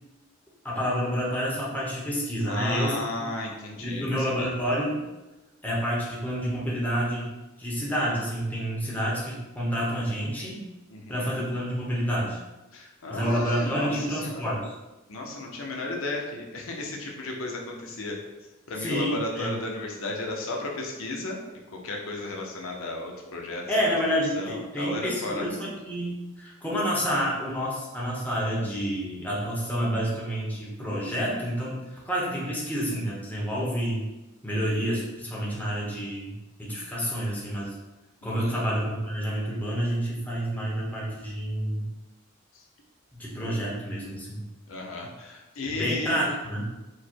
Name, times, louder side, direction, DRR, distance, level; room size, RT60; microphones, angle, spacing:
voice 1, 0.6-3.3 3.8-5.0 5.6-7.3 7.6-10.6 11.1-12.4 13.1-14.7 18.8-19.5 23.7-34.0 34.4-36.3 36.6-37.7 38.2-41.9 43.1-44.4 45.8-46.7, equal, 10° left, -5 dB, 0.9 m, -29 dB
voice 2, 2.5-4.5 10.9-11.4 12.7-14.6 15.1-18.2 18.7-21.4 21.7-23.7 24.3-25.5 38.2-38.7 42.5-42.6 44.7-46.3, left 2 dB, 85° left, 0 dB, 0.7 m, -34 dB
4.7 x 2.2 x 4.4 m, 1.1 s
head